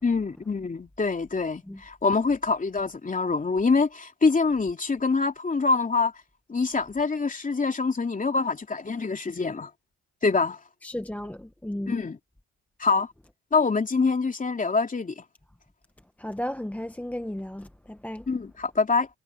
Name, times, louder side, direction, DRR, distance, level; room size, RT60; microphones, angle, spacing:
voice 1, 0.0-6.1 6.5-9.7 10.2-10.6 11.9-12.2 12.8-13.1 13.5-15.2 18.3-19.1, left 4 dB, 25° left, 3.0 m, -25 dB
voice 2, 10.8-11.9 16.2-18.3, left 1 dB, 5° left, 0.9 m, -34 dB
cardioid pair, 90°, 30 cm